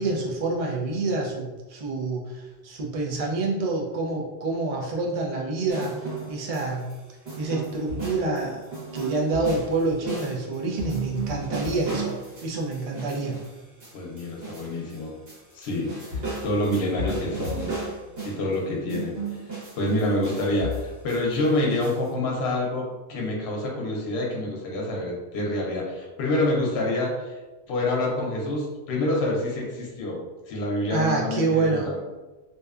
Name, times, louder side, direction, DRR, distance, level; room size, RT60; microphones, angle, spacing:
voice 1, 0.0-6.9 7.4-8.6 8.9-12.2 12.4-13.4 30.9-31.9, right 3 dB, 50° right, -2 dB, 0.4 m, -27 dB
sound 1, 5.7-7.0 7.3-15.0 15.3-18.5 18.9-22.1, right 2 dB, 70° right, 1.2 m, -35 dB
voice 2, 13.9-15.1 15.6-17.7 18.2-19.2 19.8-27.3 27.7-32.0, left 1 dB, 80° left, -1 dB, 0.9 m, -27 dB
2.6 x 2.1 x 2.3 m, 1.2 s
omnidirectional pair, 1.1 m